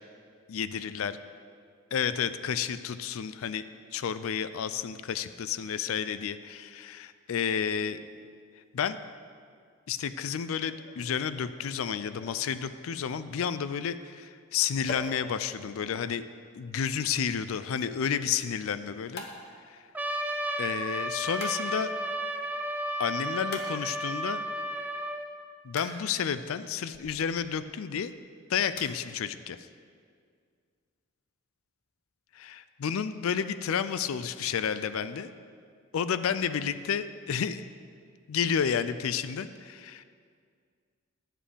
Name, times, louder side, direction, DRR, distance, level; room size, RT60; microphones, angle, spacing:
voice 1, 0.5-1.2 1.9-3.6 3.9-8.0 8.7-9.1 9.9-16.2 16.6-19.2 19.7-19.8 20.6-21.9 23.0-24.4 25.6-28.1 28.5-29.6 32.3-35.3 35.9-37.7 38.3-40.0, left 7 dB, 80° left, 13 dB, 0.4 m, -31 dB
sound 1, 10.7-13.0 14.9-17.9 19.2-20.6 21.4-22.5 23.5-24.4 25.8-27.7 28.1-28.2 28.8-28.9, left 2 dB, 50° left, 1.0 m, -46 dB
Trumpet, 20.0-25.3, right 1 dB, 10° right, 0.4 m, -33 dB
10.0 x 7.5 x 5.0 m, 2.1 s
head